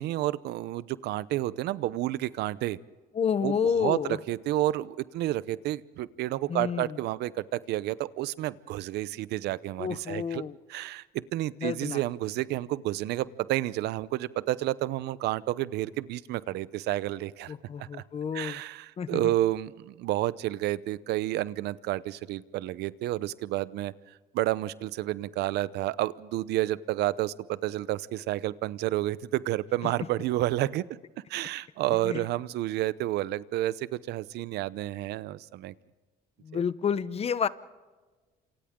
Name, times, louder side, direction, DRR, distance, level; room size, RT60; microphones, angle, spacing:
voice 1, 0.0-2.8 3.4-3.5 3.8-10.4 10.7-17.5 17.8-18.0 18.3-30.8 31.3-35.7 36.5-36.6, right 15 dB, 80° right, 18 dB, 0.8 m, -30 dB
voice 2, 3.1-4.2 6.5-7.0 9.8-10.6 11.6-12.0 17.5-18.6 19.0-19.2 29.8-29.9 32.0-32.3 36.4-37.5, left 7 dB, 35° left, 16 dB, 1.0 m, -30 dB
29.5 x 27.0 x 3.8 m, 1.3 s
cardioid pair, 110°, 17 cm